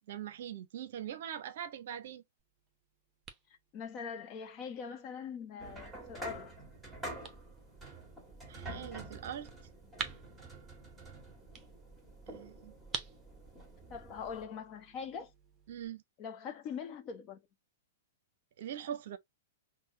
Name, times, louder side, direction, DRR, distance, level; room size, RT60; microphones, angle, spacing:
voice 1, 0.1-2.2 8.5-9.5 12.3-12.7 15.7-16.0 18.6-19.2, right 9 dB, 55° right, 0.6 m, -42 dB
sound 1, 2.4-15.9, right 6 dB, 20° right, 0.8 m, -50 dB
voice 2, 3.7-6.5 13.9-15.3 16.2-17.4, left 6 dB, 35° left, 0.9 m, -42 dB
sound 2, 5.6-14.4, right 2 dB, 5° right, 1.8 m, -48 dB
5.4 x 2.2 x 2.6 m
figure-of-eight pair, 110°, 0 cm